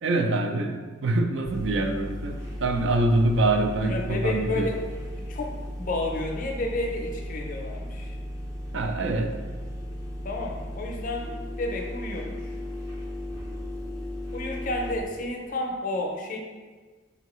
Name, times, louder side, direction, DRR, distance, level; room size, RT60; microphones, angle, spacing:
voice 1, 0.0-4.7 8.7-9.4, right 2 dB, 70° right, 5 dB, 0.4 m, -25 dB
sound 1, 1.4-15.0, left 1 dB, 15° right, 0.7 m, -36 dB
voice 2, 3.8-8.2 10.2-12.5 14.3-16.4, left 2 dB, 40° left, 1 dB, 0.5 m, -31 dB
4.5 x 2.8 x 3.0 m, 1.4 s
head